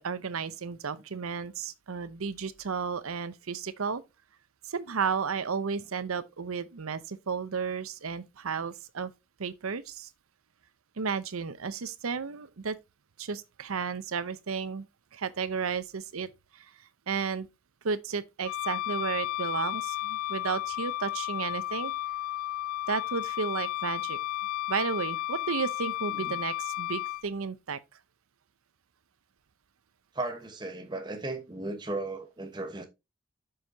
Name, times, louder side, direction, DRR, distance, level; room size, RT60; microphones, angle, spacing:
voice 1, 0.0-4.0 4.6-9.1 9.4-10.1 11.0-12.8 13.2-14.9 15.1-16.6 17.1-17.5 17.8-21.9 22.9-24.2 24.7-27.8, right 5 dB, 90° right, 0.7 m, -33 dB
Wind instrument woodwind instrument, 18.4-27.2, left 14 dB, 85° left, 0.3 m, -33 dB
voice 2, 30.1-32.9, right 2 dB, 20° right, 1.1 m, -36 dB
7.5 x 6.4 x 2.7 m
head